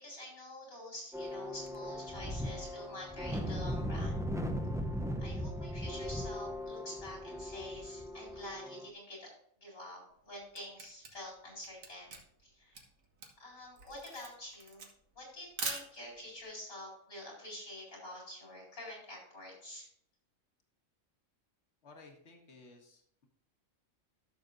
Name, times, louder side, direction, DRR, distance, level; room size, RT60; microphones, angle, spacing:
voice 1, 0.0-4.3 5.2-9.3 9.6-12.8 13.4-14.9 15.1-19.9, left 1 dB, 80° left, -4 dB, 4.7 m, -47 dB
sound 1, 1.1-8.9, equal, 5° right, 0.4 m, -38 dB
Camera, 10.1-16.3, right 4 dB, 75° right, 1.8 m, -44 dB
voice 2, 21.8-23.3, left 3 dB, 55° left, 1 dB, 1.8 m, -56 dB
13.5 x 6.8 x 2.6 m, 0.69 s
omnidirectional pair, 1.4 m